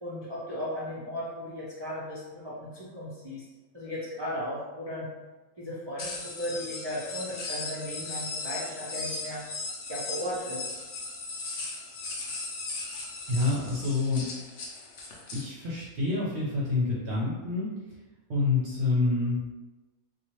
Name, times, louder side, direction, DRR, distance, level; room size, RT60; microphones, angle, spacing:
voice 1, 0.0-3.4 3.7-5.1 5.6-9.4 9.9-10.7, equal, 35° right, -9 dB, 0.4 m, -36 dB
sound 1, 6.0-15.4, left 3 dB, 60° left, 0.7 m, -37 dB
voice 2, 13.3-14.3 15.3-17.7 18.3-19.4, left 3 dB, 55° right, -7 dB, 0.8 m, -27 dB
2.8 x 2.3 x 3.0 m, 1.2 s
omnidirectional pair, 1.5 m